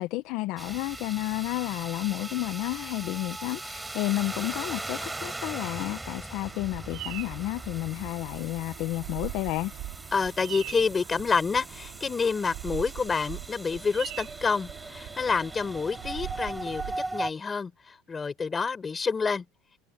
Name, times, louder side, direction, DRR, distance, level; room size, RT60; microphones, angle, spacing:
voice 1, 0.0-9.7, left 19 dB, 60° left, 0.8 m, -31 dB
sound 1, 0.6-17.3, right 2 dB, 10° right, 4.6 m, -39 dB
Bird vocalization bird call bird song, 6.4-17.0, right 19 dB, 60° right, 5.0 m, -42 dB
voice 2, 10.1-16.8 17.1-19.4, left 5 dB, 20° left, 4.9 m, -28 dB
supercardioid pair, 125°, 0 cm